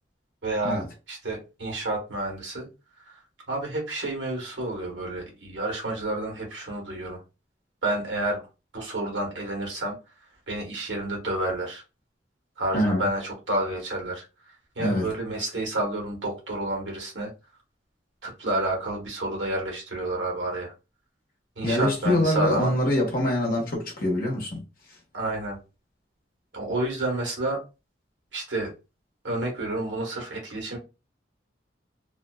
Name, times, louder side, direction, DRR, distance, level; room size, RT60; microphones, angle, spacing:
voice 1, 0.4-0.8 1.1-2.7 3.1-3.2 3.5-7.2 7.8-8.4 8.7-10.0 10.5-11.8 12.6-17.3 18.2-20.7 21.6-22.7 25.1-25.6 26.5-27.6 28.3-28.7 29.2-30.8, right 1 dB, 80° right, 1.1 m, -30 dB
voice 2, 12.7-13.1 14.8-15.1 21.6-24.6, left 1 dB, 50° left, 0.9 m, -24 dB
2.5 x 2.3 x 2.2 m
head